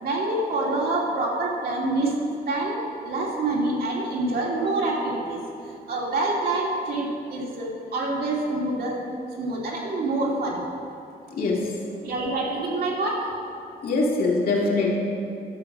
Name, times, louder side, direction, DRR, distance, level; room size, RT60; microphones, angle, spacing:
voice 1, 0.0-2.1 2.5-2.8 3.0-5.4 5.9-9.0 9.4-10.6 12.0-13.2, right 2 dB, 70° right, -3 dB, 2.8 m, -26 dB
voice 2, 11.3-11.7 13.8-15.0, left 3 dB, 65° left, -3 dB, 2.4 m, -23 dB
12.0 x 6.8 x 7.4 m, 2.5 s
wide cardioid pair, 130°, 16 cm